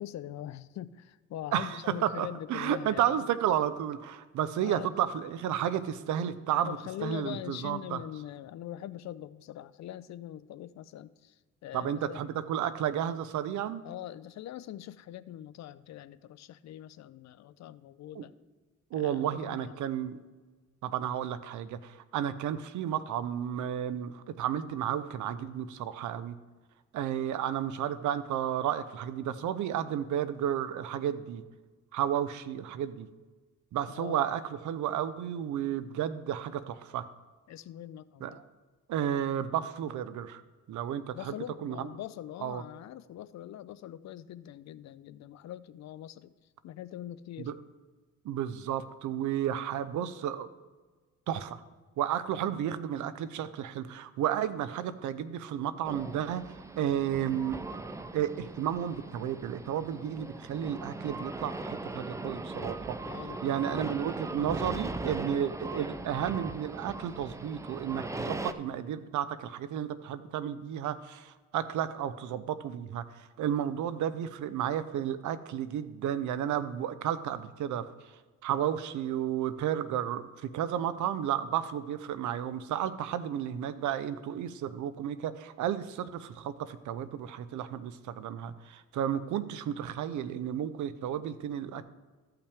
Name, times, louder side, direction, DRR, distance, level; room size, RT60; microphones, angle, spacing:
voice 1, 0.0-3.2 4.6-4.9 6.7-12.2 13.8-18.3 18.9-19.8 33.9-34.3 37.5-38.4 41.1-46.3 46.6-47.5 62.6-62.7 63.0-63.6, left 12 dB, 65° left, 15 dB, 0.5 m, -43 dB
voice 2, 1.5-6.8 7.0-8.0 11.7-13.8 18.2-18.3 18.9-20.2 20.8-26.4 26.9-31.4 31.9-33.1 33.7-37.1 38.2-38.4 38.9-40.4 40.7-41.3 41.6-41.9 42.4-42.6 47.4-47.6 48.2-50.5 51.3-51.6 52.0-57.6 58.1-63.0 63.4-77.9 78.4-91.8, right 10 dB, 75° right, 14 dB, 0.7 m, -32 dB
sound 1, 55.8-68.5, right 2 dB, 10° right, 0.4 m, -39 dB
14.0 x 5.7 x 3.4 m, 1.3 s
cardioid pair, 90°, 30 cm